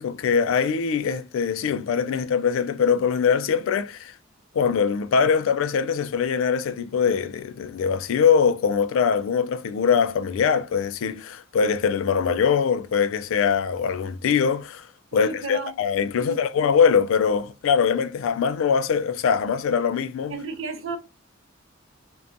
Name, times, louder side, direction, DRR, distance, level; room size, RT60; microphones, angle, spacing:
voice 1, 0.0-4.1 4.5-14.8 15.1-20.3, left 6 dB, 75° left, 0.3 m, -22 dB
voice 2, 15.1-15.7 16.1-16.4 20.3-21.0, right 4 dB, 70° right, 0.6 m, -32 dB
2.7 x 2.2 x 2.5 m
head